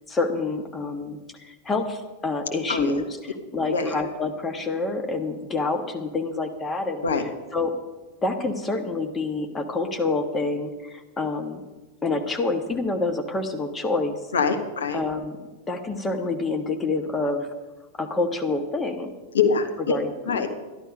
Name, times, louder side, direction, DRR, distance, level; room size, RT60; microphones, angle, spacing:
voice 1, 0.1-7.0 7.5-7.7 8.2-11.6 12.0-14.2 14.9-15.4 15.7-17.5 18.0-19.1 19.9-20.4, left 3 dB, 15° left, 5 dB, 1.4 m, -27 dB
voice 2, 14.3-15.0 19.3-20.0 20.3-20.5, left 5 dB, 65° left, 5 dB, 1.4 m, -24 dB
13.0 x 11.5 x 5.3 m, 1.2 s
figure-of-eight pair, 90°, 0 cm